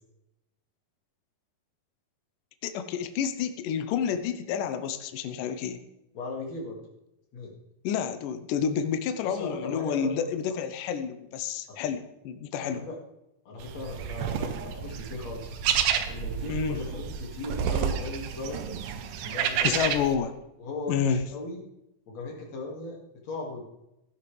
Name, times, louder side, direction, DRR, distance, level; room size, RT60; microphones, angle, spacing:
voice 1, 2.6-5.8 7.8-12.9 16.5-16.8 19.6-20.4 20.9-21.2, left 8 dB, 80° left, 9 dB, 2.3 m, -29 dB
voice 2, 6.1-6.8 7.3-7.5 9.2-10.2 11.7-11.8 12.5-12.9 13.4-18.8 19.1-19.9 20.6-21.6 22.1-23.0 23.2-23.6, left 3 dB, 50° left, -1 dB, 3.2 m, -37 dB
sound 1, 13.6-20.1, right 8 dB, 75° right, 2.3 m, -30 dB
15.5 x 11.0 x 3.3 m, 0.89 s
omnidirectional pair, 4.1 m